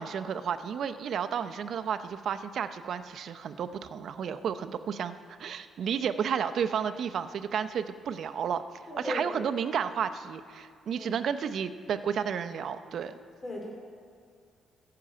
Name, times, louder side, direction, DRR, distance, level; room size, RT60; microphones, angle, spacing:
voice 1, 0.0-8.6 9.0-13.2, right 7 dB, 65° right, 10 dB, 0.7 m, -32 dB
voice 2, 8.9-9.4 10.9-11.1 13.4-13.7, left 1 dB, 25° left, -2 dB, 2.5 m, -36 dB
14.5 x 6.8 x 8.7 m, 2.3 s
cardioid pair, 90°, 0 cm